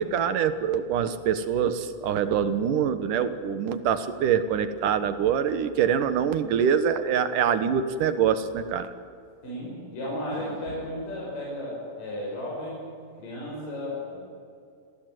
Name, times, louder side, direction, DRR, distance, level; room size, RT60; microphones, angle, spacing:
voice 1, 0.0-8.9, right 8 dB, 70° right, 11 dB, 2.8 m, -25 dB
voice 2, 9.4-12.9 13.2-14.2, left 1 dB, 65° left, -5 dB, 8.1 m, -34 dB
29.5 x 20.0 x 9.3 m, 2.5 s
omnidirectional pair, 4.1 m